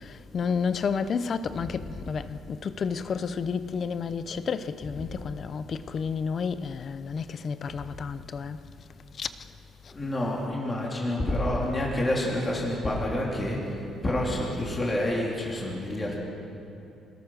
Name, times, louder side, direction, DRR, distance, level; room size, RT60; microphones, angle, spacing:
voice 1, 0.3-8.6 9.2-9.3, left 6 dB, 35° left, 0.7 m, -31 dB
voice 2, 4.8-5.1 7.7-7.8 9.9-16.2, left 1 dB, 20° left, 3.5 m, -28 dB
25.5 x 20.5 x 6.5 m
cardioid pair, 175°, 0 cm